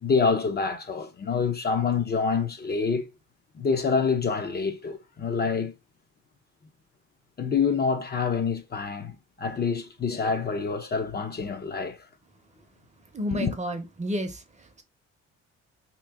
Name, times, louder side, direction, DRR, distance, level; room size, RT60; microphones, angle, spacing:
voice 1, 0.0-3.1 3.5-5.7 7.4-12.1 13.3-13.5, left 5 dB, 35° left, 0.6 m, -27 dB
voice 2, 13.1-14.8, equal, 25° right, 0.7 m, -31 dB
3.0 x 2.9 x 3.5 m
cardioid pair, 90°, 30 cm